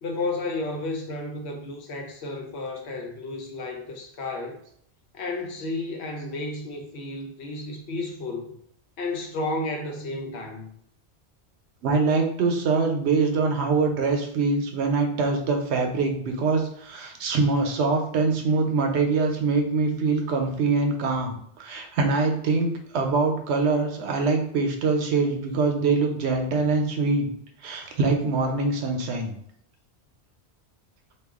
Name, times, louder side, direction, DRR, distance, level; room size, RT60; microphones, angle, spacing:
voice 1, 0.0-4.6 5.1-8.6 9.0-10.7, left 2 dB, 80° left, 0.9 m, -32 dB
voice 2, 11.8-27.3 27.6-29.3, right 4 dB, 80° right, 0.9 m, -24 dB
2.3 x 2.2 x 3.5 m
omnidirectional pair, 1.1 m